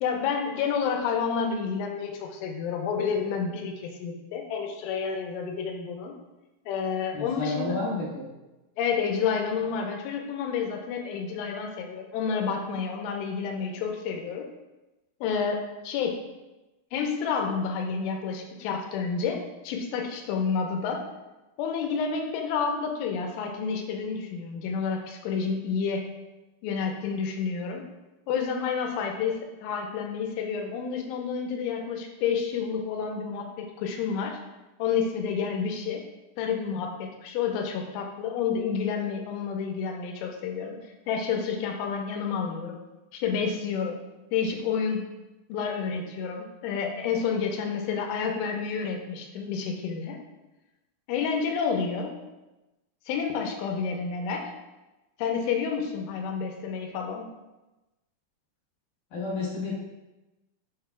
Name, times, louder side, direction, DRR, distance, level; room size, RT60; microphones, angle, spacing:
voice 1, 0.0-6.1 6.7-7.8 8.8-14.5 15.2-16.2 16.9-21.1 21.6-26.1 26.6-27.8 28.3-34.4 34.8-36.1 36.4-40.8 41.1-42.8 43.1-44.0 44.3-45.1 45.5-50.2 51.1-52.2 53.1-54.5 55.2-57.3, left 6 dB, 85° left, 2 dB, 3.2 m, -29 dB
voice 2, 7.1-8.3 59.1-59.7, left 3 dB, 60° left, -6 dB, 2.3 m, -31 dB
8.1 x 6.7 x 2.3 m, 1.0 s
omnidirectional pair, 5.6 m